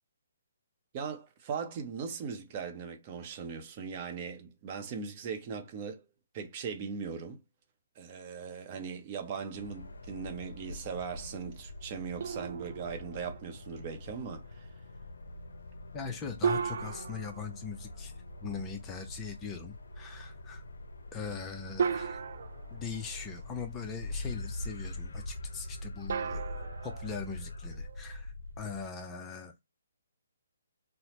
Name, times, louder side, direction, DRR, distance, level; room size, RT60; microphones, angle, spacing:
voice 1, 0.9-6.1 6.3-7.4 8.0-14.7, right 6 dB, 35° right, 0.7 m, -39 dB
sound 1, 9.5-28.9, left 1 dB, 75° left, 0.5 m, -43 dB
sound 2, 12.2-13.7 16.4-18.4 20.1-20.2 21.8-23.7 26.1-28.1, right 6 dB, 60° right, 0.4 m, -36 dB
voice 2, 15.9-18.1 18.4-20.6 21.1-22.2 22.7-29.6, left 6 dB, 15° left, 0.6 m, -41 dB
4.0 x 2.1 x 3.0 m
hypercardioid pair, 145°, 0 cm